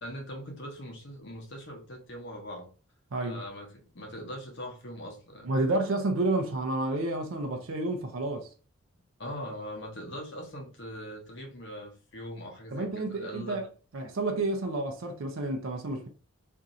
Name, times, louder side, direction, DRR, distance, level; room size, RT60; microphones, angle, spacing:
voice 1, 0.0-2.7 3.2-5.5 9.2-13.6, equal, 55° left, 0.9 m, -41 dB
voice 2, 3.1-3.4 5.4-8.5 12.7-13.7 13.9-16.1, right 2 dB, 70° right, 0.5 m, -30 dB
2.6 x 2.4 x 4.0 m
head